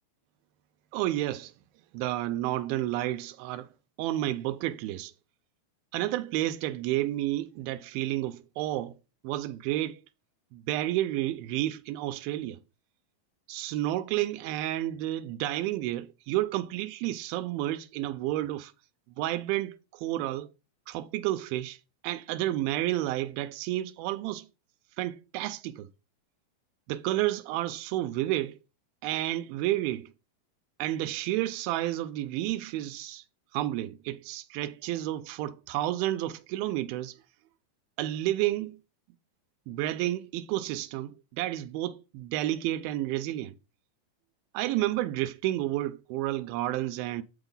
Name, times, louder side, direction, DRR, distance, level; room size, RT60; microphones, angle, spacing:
voice 1, 0.9-1.5 1.9-3.7 4.0-5.1 5.9-8.9 9.2-10.0 10.5-12.6 13.5-18.7 19.2-20.5 20.9-21.8 22.0-24.5 25.0-25.9 26.9-28.6 29.0-30.1 30.8-33.2 33.5-37.2 38.0-38.8 39.7-43.5 44.5-47.2, right 15 dB, 90° right, 2.5 m, -31 dB
7.9 x 6.6 x 3.9 m
omnidirectional pair, 4.2 m